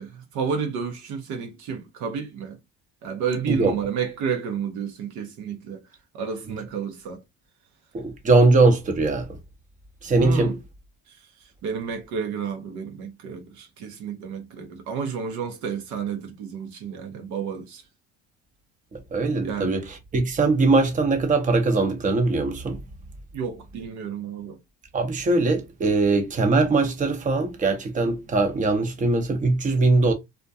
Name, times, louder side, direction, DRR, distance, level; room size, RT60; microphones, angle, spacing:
voice 1, 0.0-2.6 3.0-5.8 6.1-7.2 10.2-10.5 11.1-11.2 11.6-17.8 19.4-19.7 23.3-24.6, right 6 dB, 65° right, 0.7 m, -31 dB
voice 2, 7.9-9.3 10.0-10.6 18.9-22.8 24.9-30.1, right 3 dB, 25° right, 0.7 m, -21 dB
2.4 x 2.1 x 2.6 m
supercardioid pair, 90°, 32 cm